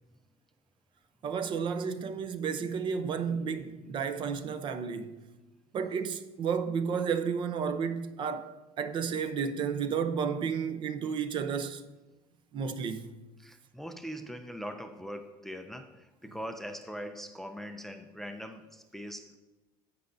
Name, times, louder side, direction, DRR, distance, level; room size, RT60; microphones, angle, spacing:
voice 1, 1.2-5.3 5.7-11.8 12.5-13.1, right 6 dB, 40° right, 0.6 m, -32 dB
voice 2, 13.4-19.4, equal, ahead, 0.4 m, -41 dB
16.0 x 5.5 x 2.6 m
cardioid pair, 130°, 12 cm